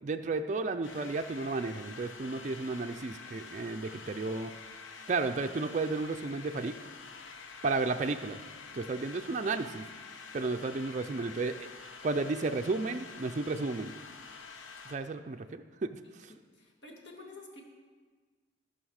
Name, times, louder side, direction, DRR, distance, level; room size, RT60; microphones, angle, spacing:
voice 1, 0.0-4.5 5.1-6.7 7.6-8.4 8.7-9.9 10.3-11.7 12.0-13.9 14.9-16.3, right 3 dB, 40° right, 6 dB, 0.4 m, -33 dB
sound 1, 0.8-15.0, left 4 dB, 90° left, 0.9 m, -48 dB
voice 2, 16.0-17.6, left 2 dB, 65° left, -1 dB, 2.0 m, -51 dB
15.0 x 5.6 x 6.4 m, 1.5 s
head